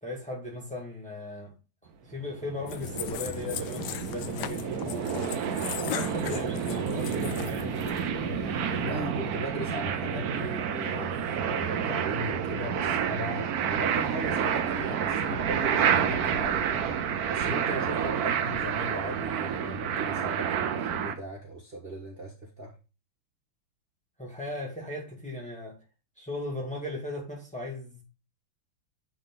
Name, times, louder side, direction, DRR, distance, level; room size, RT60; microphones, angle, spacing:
voice 1, 0.0-1.5 2.0-5.4 5.9-7.8 24.2-25.8 26.2-28.0, left 1 dB, 5° left, 1.8 m, -37 dB
sound 1, 2.2-21.1, right 7 dB, 70° right, 0.9 m, -29 dB
sound 2, 2.7-8.8, left 11 dB, 80° left, 0.9 m, -38 dB
voice 2, 8.7-16.9 17.3-22.7, right 1 dB, 30° right, 1.5 m, -37 dB
10.0 x 3.7 x 3.8 m
omnidirectional pair, 2.4 m